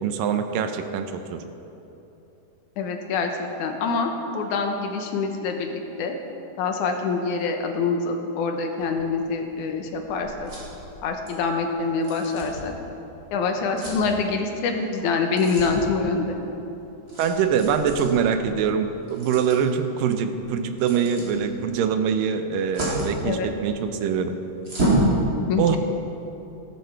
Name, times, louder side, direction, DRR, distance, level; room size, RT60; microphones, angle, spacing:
voice 1, 0.0-1.4 17.2-24.4 25.6-25.8, right 7 dB, 75° right, 8 dB, 2.3 m, -24 dB
voice 2, 2.8-6.1 6.6-10.5 11.0-12.7 13.3-16.4 23.2-23.5 25.5-25.8, left 4 dB, 70° left, 3 dB, 2.2 m, -25 dB
sound 1, 8.8-25.1, right 1 dB, 25° right, 3.6 m, -33 dB
14.5 x 12.5 x 4.6 m, 2.9 s
omnidirectional pair, 4.2 m